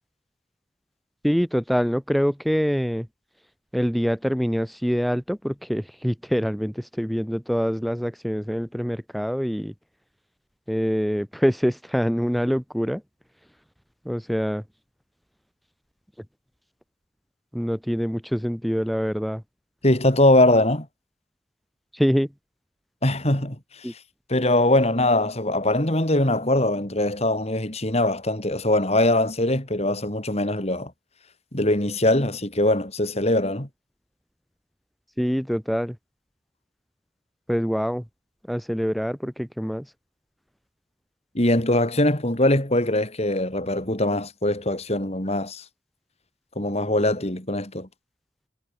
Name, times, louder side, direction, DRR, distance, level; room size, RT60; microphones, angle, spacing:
voice 1, 1.2-3.1 3.7-9.7 10.7-13.0 14.1-14.6 17.5-19.4 21.9-22.3 23.8-23.9 35.2-36.0 37.5-38.0 38.5-39.9, equal, ahead, 2.0 m, -25 dB
voice 2, 19.8-20.9 23.0-23.6 23.8-23.9 24.3-30.9 31.5-33.7 41.4-45.6 46.6-47.9, left 1 dB, 35° left, 3.5 m, -22 dB
head